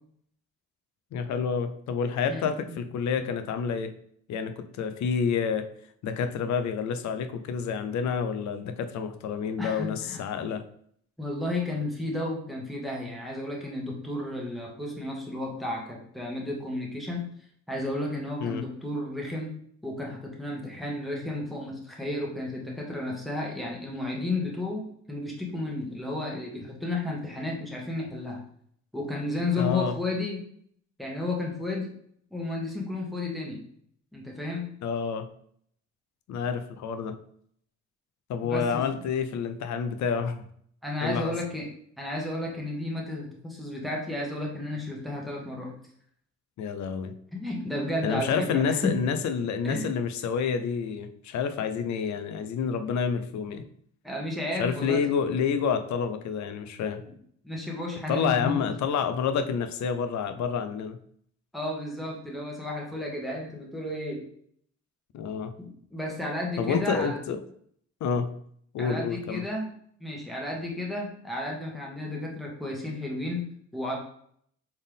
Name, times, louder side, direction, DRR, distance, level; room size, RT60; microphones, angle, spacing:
voice 1, 1.1-3.9 4.3-5.7 6.0-10.6 18.4-18.6 29.6-29.9 34.8-35.3 36.3-37.2 38.3-40.4 41.0-41.3 46.6-47.1 48.0-53.6 54.6-57.0 58.1-61.0 65.1-65.5 66.6-67.4 68.0-68.4 68.7-69.4, left 6 dB, 70° left, 9 dB, 0.6 m, -28 dB
voice 2, 2.3-2.8 9.6-10.2 11.2-17.3 17.7-19.5 19.8-28.4 28.9-30.4 31.0-31.9 32.3-33.6 34.1-34.7 38.4-38.8 40.8-41.7 42.0-45.7 47.3-49.0 49.6-49.9 54.0-55.0 57.0-57.2 57.4-58.7 61.5-64.2 65.6-67.2 68.8-69.7 70.0-73.4 73.7-74.0, left 2 dB, ahead, -2 dB, 1.4 m, -32 dB
4.3 x 3.5 x 3.5 m, 0.64 s
cardioid pair, 90°, 30 cm